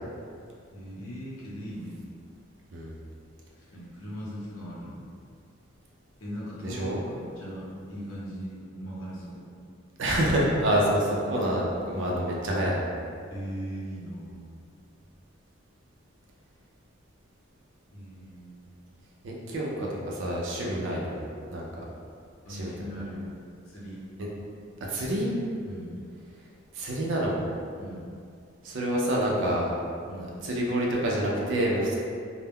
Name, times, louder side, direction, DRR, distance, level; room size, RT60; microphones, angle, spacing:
voice 1, 0.7-2.0 3.5-5.0 6.2-9.4 11.7-12.2 13.3-14.5 17.9-18.7 20.7-20.9 22.4-23.4 23.6-24.0 25.6-25.9 27.8-28.1 30.1-30.3, equal, 90° left, -8 dB, 0.7 m, -39 dB
voice 2, 6.6-7.0 10.0-12.8 19.2-21.1 21.5-21.8 22.5-22.7 24.2-24.3 24.8-25.3 26.7-27.4 28.6-29.7 30.2-32.0, right 1 dB, 60° right, -3 dB, 0.4 m, -27 dB
2.1 x 2.0 x 3.4 m, 2.3 s
head